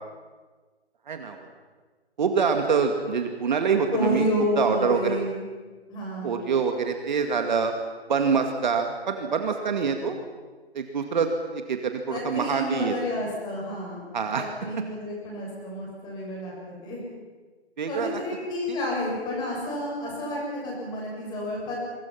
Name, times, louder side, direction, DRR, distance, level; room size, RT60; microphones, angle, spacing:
voice 1, 1.1-1.4 2.2-4.3 4.6-5.2 6.2-7.7 8.1-10.2 10.7-12.9 14.1-14.5 17.8-18.2 18.7-18.8, right 5 dB, 45° right, 5 dB, 2.2 m, -25 dB
voice 2, 3.9-5.5 5.9-6.4 12.1-14.0 14.4-17.0 17.9-21.8, equal, 15° left, -2 dB, 6.9 m, -30 dB
28.0 x 24.0 x 5.9 m, 1.4 s
figure-of-eight pair, 150°, 33 cm